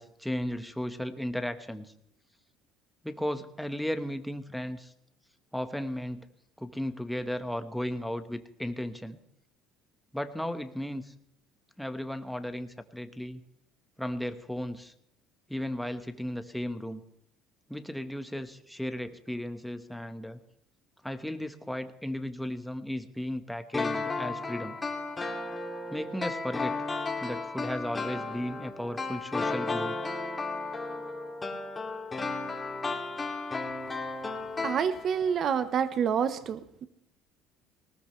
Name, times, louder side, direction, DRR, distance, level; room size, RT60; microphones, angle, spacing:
voice 1, 0.0-1.9 3.0-4.9 5.5-6.2 6.6-9.2 10.1-11.1 11.8-13.4 14.0-14.9 15.5-17.0 17.7-20.4 21.0-24.8 25.9-26.8 27.2-30.0, equal, ahead, 8 dB, 1.4 m, -35 dB
sound 1, 23.7-35.4 35.6-35.7, left 3 dB, 20° left, 2.5 m, -34 dB
voice 2, 34.6-36.9, right 7 dB, 50° right, 12 dB, 1.1 m, -28 dB
19.0 x 19.0 x 3.3 m, 0.73 s
supercardioid pair, 95°, 0 cm